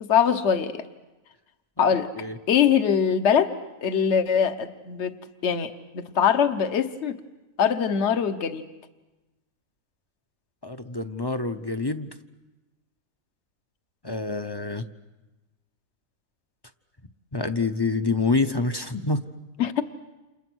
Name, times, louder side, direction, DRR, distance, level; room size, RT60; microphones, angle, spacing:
voice 1, 0.0-0.8 1.8-2.1 2.5-3.5 3.8-5.1 5.4-7.2 7.6-8.7 19.6-19.8, left 7 dB, 55° left, 10 dB, 1.4 m, -22 dB
voice 2, 10.6-12.1 14.0-14.8 17.3-19.2, left 3 dB, 20° left, 9 dB, 0.8 m, -26 dB
30.0 x 28.0 x 6.3 m, 1.1 s
omnidirectional pair, 1.5 m